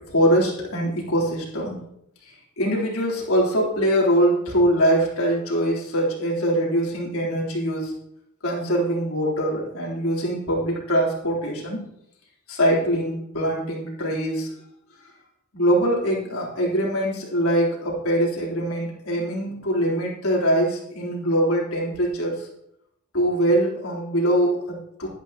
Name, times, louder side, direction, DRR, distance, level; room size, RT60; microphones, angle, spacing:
voice 1, 0.1-1.8 2.6-7.9 8.4-11.8 12.5-14.5 15.5-22.5 23.1-25.1, equal, 85° left, -4 dB, 3.7 m, -23 dB
12.0 x 10.5 x 3.0 m, 0.77 s
head